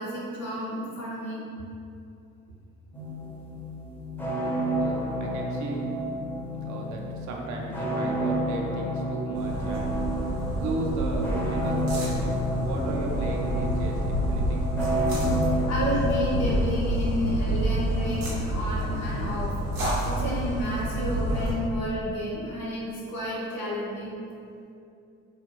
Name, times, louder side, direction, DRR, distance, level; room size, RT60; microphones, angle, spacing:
voice 1, 0.0-1.4 15.7-24.1, equal, 80° left, -8 dB, 0.9 m, -31 dB
sound 1, 2.9-16.6, right 1 dB, 5° left, 0.6 m, -30 dB
voice 2, 4.8-5.9 6.6-10.0 10.6-12.3 12.5-14.6, right 2 dB, 45° right, 0 dB, 0.5 m, -35 dB
sound 2, 9.3-21.5, equal, 85° right, 0.6 m, -28 dB
3.1 x 2.3 x 3.0 m, 2.6 s
figure-of-eight pair, 45°, 41 cm